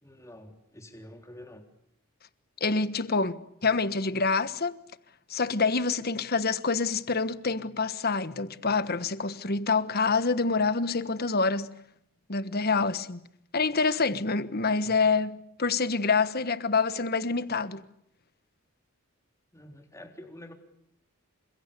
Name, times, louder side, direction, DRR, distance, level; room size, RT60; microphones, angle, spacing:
voice 1, 0.0-1.6 14.8-15.0 19.5-20.5, left 1 dB, 15° left, 3.7 m, -47 dB
voice 2, 2.6-4.8 5.3-11.7 12.3-13.2 13.5-17.8, left 4 dB, 45° left, 1.3 m, -27 dB
29.0 x 26.0 x 6.9 m
head